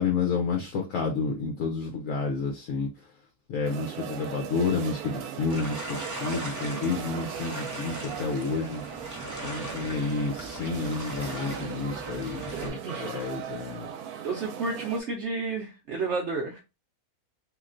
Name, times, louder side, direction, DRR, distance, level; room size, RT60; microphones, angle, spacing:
voice 1, 0.0-2.9 3.5-8.8 9.4-13.9, left 4 dB, 70° left, 1.0 m, -30 dB
sound 1, 3.6-15.0, right 8 dB, 85° right, 1.1 m, -39 dB
sound 2, 5.5-12.7, right 1 dB, 20° right, 0.4 m, -39 dB
voice 2, 12.8-13.3 14.2-16.6, right 3 dB, 65° right, 0.8 m, -31 dB
3.1 x 2.8 x 2.4 m
omnidirectional pair, 1.6 m